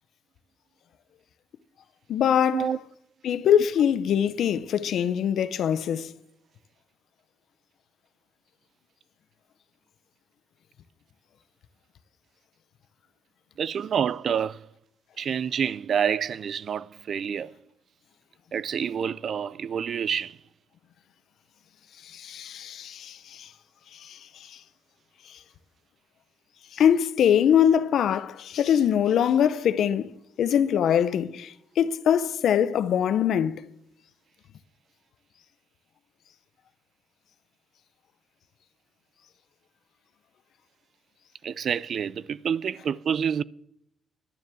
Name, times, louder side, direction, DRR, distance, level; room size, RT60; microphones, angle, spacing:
voice 1, 2.1-2.7 3.2-6.1 22.1-23.5 24.1-24.2 26.8-30.1 30.4-33.5, left 9 dB, 75° left, 0.7 m, -23 dB
voice 2, 13.6-14.6 15.2-17.5 18.5-20.4 41.4-43.4, right 7 dB, 60° right, 0.4 m, -28 dB
11.5 x 7.3 x 7.7 m
cardioid pair, 100°, 0 cm